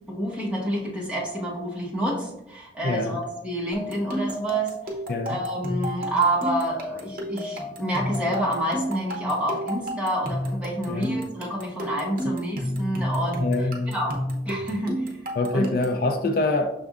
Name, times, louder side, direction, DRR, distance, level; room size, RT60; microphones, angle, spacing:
voice 1, 0.1-4.7 5.2-14.2 14.4-15.1 15.5-15.7, right 1 dB, 5° right, 1.1 m, -28 dB
voice 2, 2.8-3.2 5.1-5.4 10.9-11.2 13.4-14.0 15.4-16.7, left 2 dB, 50° left, 0.4 m, -25 dB
sound 1, 3.7-16.0, equal, 50° right, 0.8 m, -31 dB
6.3 x 3.4 x 2.4 m
head